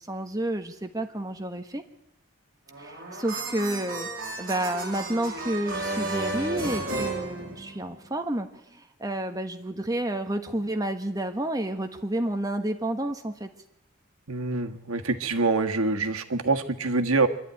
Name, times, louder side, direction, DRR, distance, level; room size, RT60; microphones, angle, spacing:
voice 1, 0.0-1.8 2.8-4.1 4.4-13.5, right 1 dB, 15° right, 6 dB, 1.3 m, -30 dB
sound 1, 2.7-8.0, right 2 dB, 40° right, 5.9 m, -33 dB
voice 2, 14.3-17.3, right 3 dB, 90° right, 7 dB, 1.6 m, -25 dB
25.5 x 12.0 x 9.5 m, 0.84 s
head